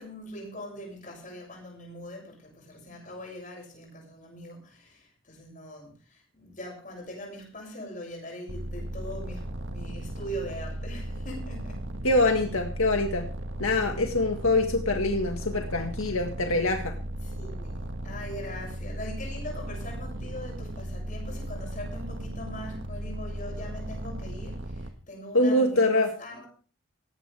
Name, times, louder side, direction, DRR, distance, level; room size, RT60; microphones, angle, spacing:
voice 1, 0.0-11.9 13.8-14.0 17.2-26.5, equal, 40° left, 0 dB, 7.4 m, -41 dB
sound 1, 8.5-24.9, right 1 dB, 65° right, 1.6 m, -36 dB
voice 2, 12.0-13.3 13.6-16.9 25.3-26.1, left 2 dB, 80° left, 3 dB, 1.8 m, -24 dB
19.0 x 15.0 x 3.5 m, 0.39 s
head